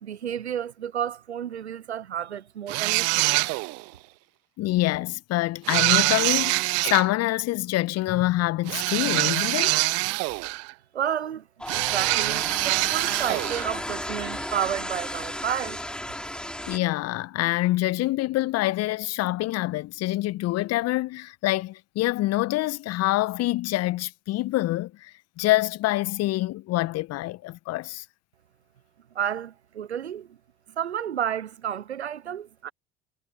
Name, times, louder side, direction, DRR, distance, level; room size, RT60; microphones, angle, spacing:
voice 1, 0.0-3.5 10.9-11.5 11.7-15.8 29.1-30.4 30.8-32.7, right 9 dB, 80° right, 0.8 m, -31 dB
sound 1, 2.7-3.8 5.6-7.1 8.7-10.7 11.7-13.7, right 28 dB, 50° right, 0.6 m, -24 dB
voice 2, 4.6-9.8 16.7-28.0, left 17 dB, 50° left, 1.5 m, -26 dB
sound 2, 11.6-16.8, equal, 5° left, 6.1 m, -34 dB
figure-of-eight pair, 60°, 32 cm